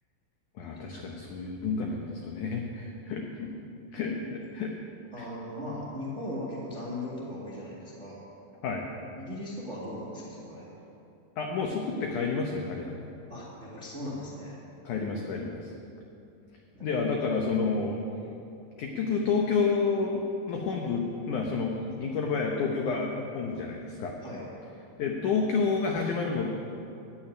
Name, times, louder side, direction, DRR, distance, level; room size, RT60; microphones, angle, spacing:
voice 1, 0.6-3.5 3.9-4.2 4.5-4.7 5.2-5.3 8.6-8.9 11.4-13.1 14.8-15.7 16.8-18.0 18.8-24.2 25.0-26.6, left 4 dB, 80° left, 1 dB, 1.8 m, -29 dB
voice 2, 3.9-4.3 5.1-8.2 9.1-10.7 13.3-14.6 16.7-16.9 24.2-24.4, left 1 dB, 40° right, -6 dB, 0.9 m, -38 dB
15.5 x 5.9 x 9.9 m, 2.7 s
omnidirectional pair, 4.9 m